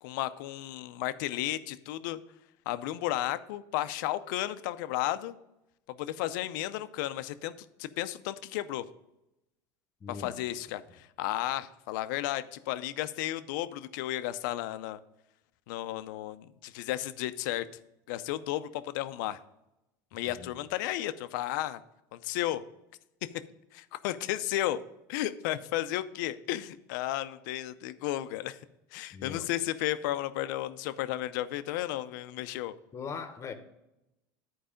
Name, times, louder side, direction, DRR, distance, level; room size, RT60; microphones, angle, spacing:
voice 1, 0.0-2.2 2.7-5.4 5.9-7.5 7.8-8.8 10.1-15.0 15.7-17.7 18.1-19.4 20.1-21.8 22.1-22.6 23.7-24.8 25.1-28.6 28.9-32.7, left 14 dB, 75° left, 0.5 m, -33 dB
voice 2, 10.0-10.3 20.3-20.5 29.1-29.5 32.9-33.5, left 6 dB, 30° left, 1.0 m, -40 dB
10.5 x 4.7 x 5.1 m
supercardioid pair, 115°, 10 cm